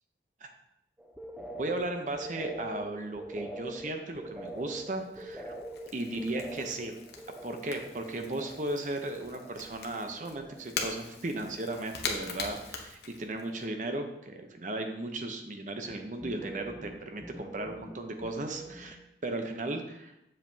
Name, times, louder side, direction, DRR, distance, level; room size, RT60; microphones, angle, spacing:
sound 1, 1.0-9.9 10.2-10.9 11.2-11.9 12.2-12.6 15.9-19.1, right 1 dB, 5° right, 0.4 m, -45 dB
voice 1, 1.6-5.5 5.9-7.0 7.4-19.0 19.2-20.1, right 2 dB, 45° right, 5 dB, 0.7 m, -36 dB
Crackle / Crack, 4.1-13.6, left 5 dB, 65° left, 1.0 m, -42 dB
7.4 x 7.4 x 2.8 m, 0.84 s
head